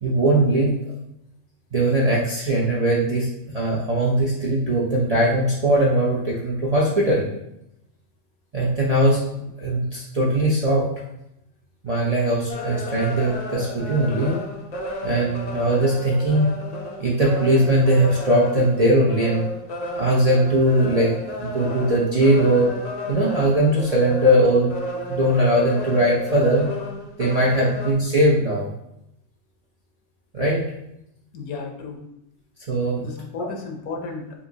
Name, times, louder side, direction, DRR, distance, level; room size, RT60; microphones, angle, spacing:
voice 1, 0.0-0.7 1.7-3.3 3.5-7.3 8.5-9.2 9.6-10.9 11.8-14.4 15.0-16.5 17.0-19.4 19.9-21.1 21.4-22.7 23.1-24.7 25.1-26.7 27.2-28.7 30.3-30.6 32.7-33.1, right 1 dB, 40° right, -6 dB, 0.5 m, -20 dB
sound 1, 12.5-27.9, left 1 dB, 70° left, 0.4 m, -32 dB
voice 2, 31.3-32.0 33.0-34.5, left 4 dB, 85° left, 2 dB, 1.2 m, -33 dB
5.6 x 2.6 x 2.7 m, 0.82 s
omnidirectional pair, 1.5 m